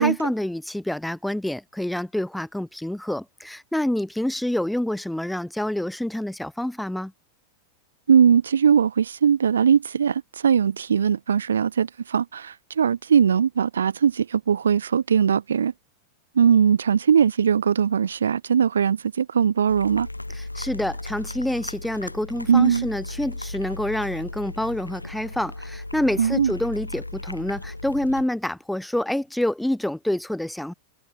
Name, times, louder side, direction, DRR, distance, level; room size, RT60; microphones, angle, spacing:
voice 1, 0.0-7.1 20.3-30.7, left 1 dB, 5° left, 2.2 m, -27 dB
voice 2, 8.1-15.7 16.4-20.1 22.5-22.9 26.2-26.5, right 7 dB, 70° right, 1.0 m, -20 dB
sound 1, 19.7-28.2, left 2 dB, 85° left, 5.6 m, -36 dB
figure-of-eight pair, 90°, 0 cm